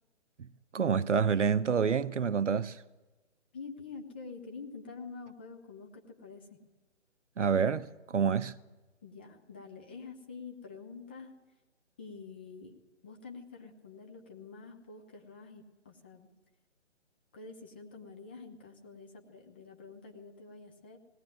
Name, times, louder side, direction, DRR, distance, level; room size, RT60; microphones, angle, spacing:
voice 1, 0.7-2.8 7.4-8.5, right 6 dB, 75° right, 1.0 m, -28 dB
voice 2, 3.5-6.5 9.0-11.3 12.0-12.7 13.0-16.3 17.3-21.0, left 4 dB, 10° left, 0.6 m, -47 dB
20.0 x 18.0 x 9.3 m
hypercardioid pair, 155°, 36 cm